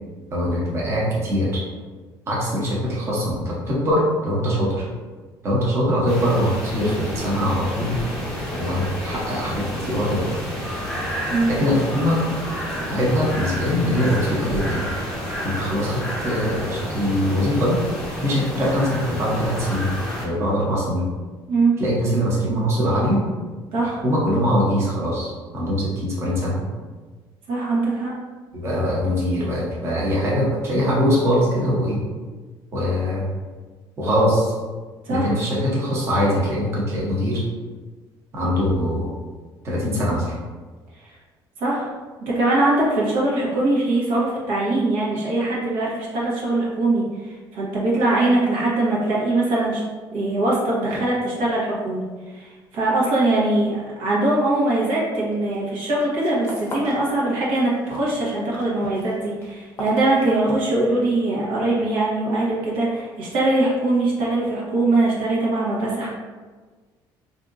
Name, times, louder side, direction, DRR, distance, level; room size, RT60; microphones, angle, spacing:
voice 1, 0.3-1.6 2.3-4.9 5.4-8.1 8.6-10.4 11.5-12.2 12.9-14.9 15.4-17.8 18.2-19.9 20.2-21.1 21.8-23.2 23.8-26.6 28.5-32.0 32.7-33.3 34.0-34.5 35.1-37.4 38.3-39.1 39.6-40.3 45.1-45.2, equal, 30° right, -6 dB, 0.8 m, -22 dB
sound 1, 6.1-20.3, equal, 5° left, 0.9 m, -30 dB
voice 2, 11.3-11.6 21.5-21.8 23.7-24.0 27.5-28.1 35.0-35.3 41.0-41.1 41.6-41.9 42.2-47.0 47.5-49.8 50.1-52.0 52.3-66.1, right 2 dB, 85° right, -6 dB, 1.1 m, -22 dB
sound 2, 55.3-55.6 55.9-57.1 57.4-58.0 58.3-60.8, left 1 dB, 30° left, 0.6 m, -37 dB
3.6 x 2.7 x 2.5 m, 1.4 s
cardioid pair, 145°, 9 cm